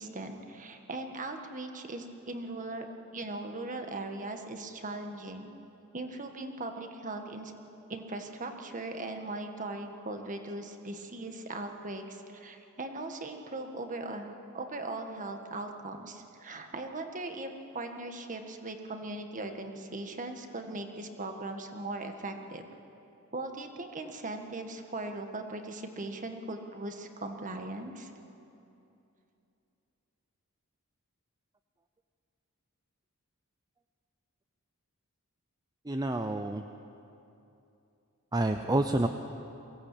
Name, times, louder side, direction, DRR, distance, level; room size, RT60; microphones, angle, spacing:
voice 1, 0.0-2.9 3.1-5.5 5.9-7.5 7.9-22.6 23.3-28.1, right 2 dB, 35° right, 5 dB, 1.6 m, -39 dB
voice 2, 35.9-36.6 38.3-39.1, right 1 dB, 20° right, 6 dB, 0.6 m, -28 dB
23.0 x 17.0 x 8.5 m, 2.8 s
head